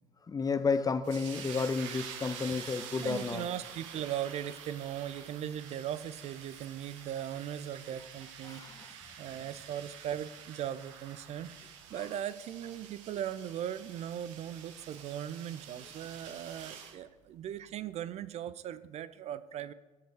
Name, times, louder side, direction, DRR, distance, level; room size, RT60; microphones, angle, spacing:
voice 1, 0.3-3.4 8.4-8.9, left 4 dB, 20° left, 0.5 m, -31 dB
sound 1, 1.0-17.0, right 8 dB, 65° right, 0.9 m, -48 dB
voice 2, 3.0-19.7, right 10 dB, 40° right, 0.4 m, -39 dB
7.9 x 5.1 x 6.1 m
figure-of-eight pair, 55°, 17 cm